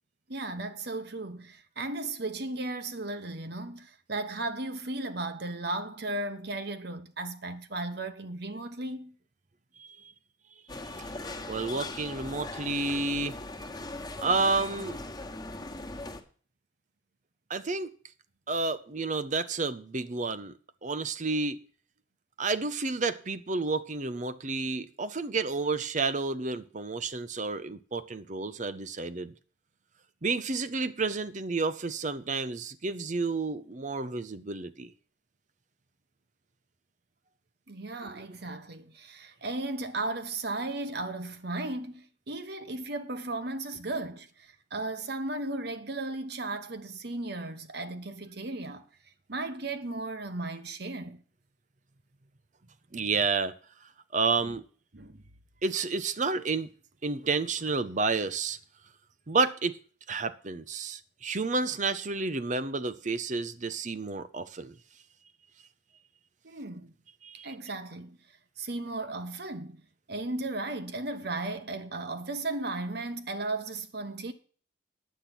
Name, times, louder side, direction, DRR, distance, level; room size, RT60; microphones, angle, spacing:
voice 1, 0.3-9.2 37.7-48.8 49.3-51.2 54.9-55.2 66.4-66.9 67.4-68.2 68.6-69.8 70.1-74.3, right 2 dB, 55° right, 1.1 m, -35 dB
voice 2, 9.8-10.1 11.0-11.2 11.5-13.4 14.2-15.0 17.5-17.9 18.5-20.5 20.8-21.6 22.4-29.3 30.2-34.9 38.0-38.2 52.9-53.5 54.1-54.6 55.6-56.7 57.0-58.6 59.3-59.8 60.1-64.8 67.2-67.5, right 3 dB, 40° right, 0.7 m, -30 dB
sound 1, 10.7-16.2, left 2 dB, 20° left, 1.4 m, -39 dB
10.0 x 8.5 x 6.0 m
head